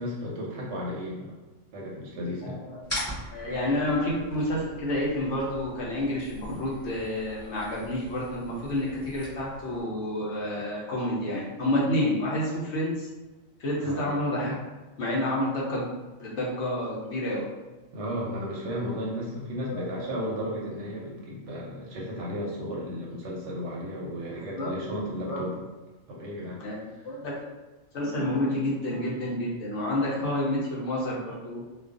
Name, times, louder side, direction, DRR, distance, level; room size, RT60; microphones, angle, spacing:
voice 1, 0.0-1.3 1.7-2.6 13.8-14.1 17.9-25.6 26.1-26.6, equal, 65° right, -3 dB, 0.8 m, -34 dB
voice 2, 2.4-2.8 3.3-13.1 13.6-14.6 15.0-15.9 16.2-17.5 19.7-20.4 24.5-24.7 25.0-25.4 26.6-27.3 27.9-31.6, left 1 dB, 65° left, -4 dB, 0.8 m, -29 dB
sound 1, 2.8-9.8, equal, 10° left, 1.2 m, -41 dB
2.4 x 2.2 x 2.4 m, 1.2 s
omnidirectional pair, 1.4 m